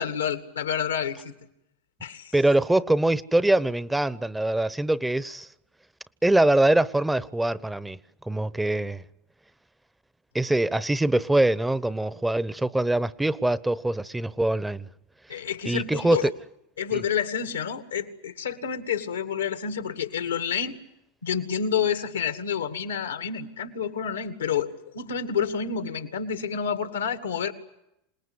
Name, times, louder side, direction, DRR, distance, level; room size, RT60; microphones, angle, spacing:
voice 1, 0.0-1.3 2.0-2.3 15.3-16.3 16.8-20.8 21.2-27.5, left 7 dB, 85° left, 2.4 m, -29 dB
voice 2, 2.3-5.5 6.2-8.0 8.3-9.0 10.3-14.9 15.6-16.3 16.9-17.0, right 1 dB, 10° right, 1.0 m, -23 dB
27.0 x 19.5 x 9.9 m
hypercardioid pair, 85°, 0 cm